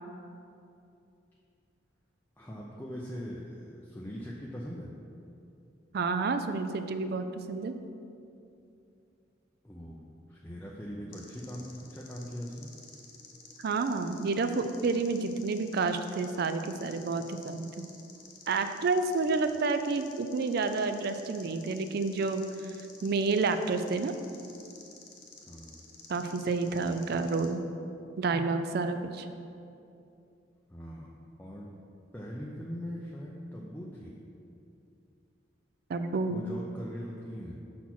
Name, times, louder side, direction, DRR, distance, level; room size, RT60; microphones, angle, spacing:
voice 1, 2.4-4.9 9.6-12.7 25.5-25.8 30.7-31.7 32.1-34.2 36.3-37.6, equal, 10° left, -4 dB, 0.5 m, -41 dB
voice 2, 5.9-7.7 13.6-17.8 18.5-22.4 23.0-24.1 26.1-27.6 28.2-29.3 35.9-36.4, right 4 dB, 60° right, 9 dB, 0.4 m, -29 dB
sound 1, 11.1-27.5, left 4 dB, 50° left, 0.8 m, -52 dB
5.6 x 4.3 x 5.9 m, 2.6 s
head